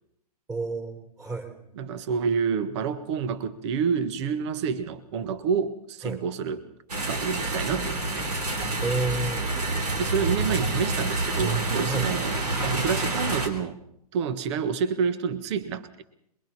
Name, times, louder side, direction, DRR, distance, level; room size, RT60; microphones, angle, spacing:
voice 1, 0.5-1.5 6.0-6.2 8.8-9.5 11.9-12.1, right 3 dB, 15° right, 5 dB, 4.2 m, -30 dB
voice 2, 1.7-6.7 7.1-8.3 10.0-13.8 14.1-15.9, right 6 dB, 45° right, 13 dB, 1.5 m, -28 dB
sound 1, 6.9-13.5, right 2 dB, 75° right, 3.8 m, -28 dB
27.5 x 22.5 x 4.3 m, 0.75 s
figure-of-eight pair, 110°, 20 cm